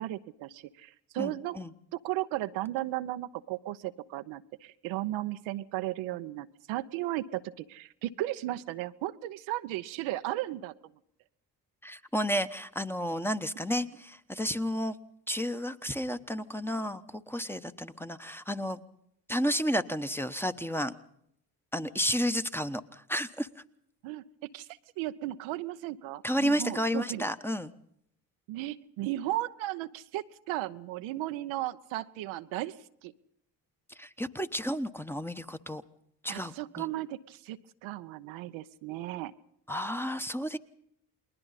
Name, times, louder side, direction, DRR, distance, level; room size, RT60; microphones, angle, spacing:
voice 1, 0.0-1.6 1.9-10.7 21.8-21.9 24.0-24.7 25.0-27.3 28.5-33.1 36.3-39.3, right 15 dB, 70° right, 11 dB, 0.8 m, -35 dB
voice 2, 1.2-1.7 11.8-15.0 15.3-18.8 19.3-20.9 21.7-23.5 26.2-27.7 34.0-35.8 36.2-36.8 39.7-40.6, equal, 5° left, 10 dB, 1.1 m, -32 dB
30.0 x 21.0 x 4.1 m, 0.74 s
hypercardioid pair, 50°, 48 cm